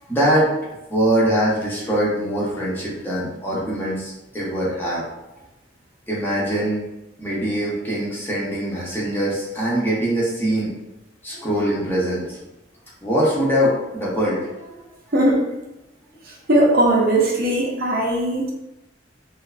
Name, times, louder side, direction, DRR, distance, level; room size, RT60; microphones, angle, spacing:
voice 1, 0.1-0.5 0.9-5.0 6.1-6.8 7.2-10.7 11.2-12.4 13.0-14.7, equal, 10° left, -7 dB, 0.6 m, -22 dB
voice 2, 16.5-18.5, right 1 dB, 55° right, -2 dB, 0.5 m, -18 dB
2.5 x 2.4 x 2.2 m, 0.95 s
head